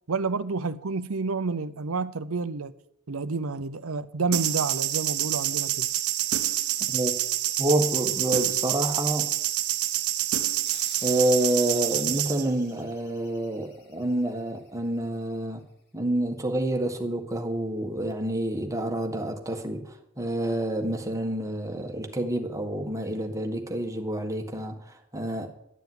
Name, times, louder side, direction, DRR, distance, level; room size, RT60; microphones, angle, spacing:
voice 1, 0.1-2.7 3.1-5.9, right 4 dB, 70° right, 0.7 m, -29 dB
sound 1, 4.3-12.5, right 13 dB, 85° right, 0.9 m, -27 dB
voice 2, 7.6-9.3 11.0-15.6 15.9-25.5, right 1 dB, 15° right, 1.7 m, -28 dB
sound 2, 10.7-15.6, left 4 dB, 50° left, 3.0 m, -50 dB
12.5 x 7.0 x 9.5 m
head